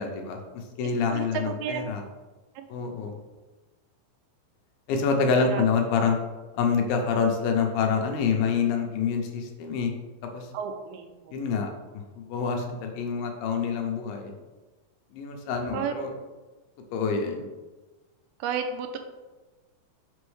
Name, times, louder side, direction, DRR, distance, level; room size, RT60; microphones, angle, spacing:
voice 1, 0.0-2.0 2.7-3.2 4.9-6.2 6.5-9.9 10.2-10.5 11.3-14.3 15.1-16.1 16.9-17.5, left 5 dB, 80° left, 3 dB, 2.3 m, -27 dB
voice 2, 1.1-1.8 2.6-2.7 5.4-5.6 10.5-11.4 15.7-15.9 17.1-17.4 18.4-19.0, right 7 dB, 90° right, 6 dB, 2.5 m, -32 dB
6.1 x 5.4 x 3.2 m, 1.2 s
omnidirectional pair, 4.3 m